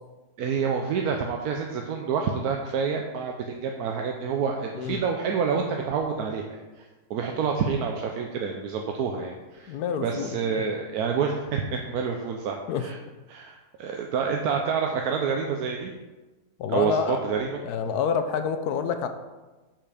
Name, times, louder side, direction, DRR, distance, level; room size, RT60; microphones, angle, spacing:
voice 1, 0.4-9.8 10.0-12.9 13.3-15.9 16.7-17.6, right 6 dB, 75° right, 2 dB, 1.2 m, -28 dB
voice 2, 9.7-10.4 12.7-12.9 16.6-19.1, left 6 dB, 85° left, 9 dB, 1.2 m, -28 dB
6.7 x 6.0 x 4.9 m, 1.2 s
omnidirectional pair, 1.6 m